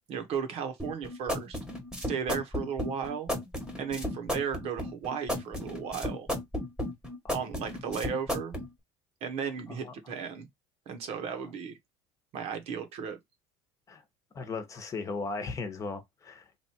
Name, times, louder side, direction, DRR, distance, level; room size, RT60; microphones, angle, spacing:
voice 1, 0.1-1.6 2.0-3.3 3.8-6.3 7.3-8.6 9.2-10.5 10.9-11.8 12.3-13.2, right 7 dB, 55° right, 1.2 m, -35 dB
sound 1, 0.8-8.7, left 1 dB, 5° right, 1.3 m, -34 dB
voice 2, 9.7-10.1 13.9-14.0 14.3-16.6, left 4 dB, 25° left, 1.1 m, -37 dB
3.2 x 2.6 x 4.3 m
cardioid pair, 125°, 12 cm